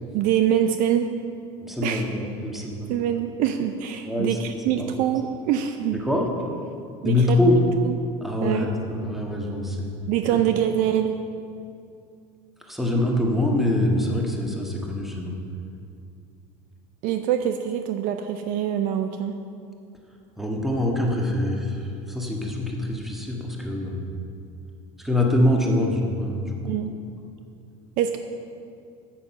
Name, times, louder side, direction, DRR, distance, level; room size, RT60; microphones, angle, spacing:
voice 1, 0.1-1.1 1.8-2.0 2.9-6.0 7.0-7.4 7.8-7.9 8.4-8.7 10.1-11.2 17.0-19.3 26.6-26.9 28.0-28.2, right 10 dB, 60° right, 8 dB, 0.5 m, -24 dB
voice 2, 1.6-2.9 4.1-4.9 5.9-6.3 7.0-7.6 8.2-9.9 10.3-10.4 12.6-15.4 20.4-21.8 22.1-24.1 25.0-26.5, left 1 dB, ahead, -1 dB, 1.5 m, -24 dB
8.8 x 7.6 x 5.8 m, 2.5 s
supercardioid pair, 105°, 16 cm